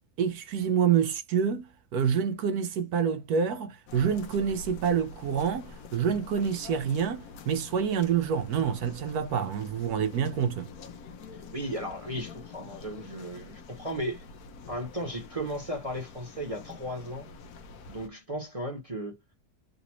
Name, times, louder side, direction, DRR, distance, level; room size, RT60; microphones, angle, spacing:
voice 1, 0.2-10.7, right 7 dB, 75° right, 1.1 m, -27 dB
sound 1, 3.9-18.1, left 4 dB, 70° left, 1.1 m, -47 dB
voice 2, 11.5-14.2 14.7-17.3 17.9-19.2, equal, 25° right, 1.1 m, -35 dB
3.9 x 2.5 x 2.9 m
omnidirectional pair, 1.7 m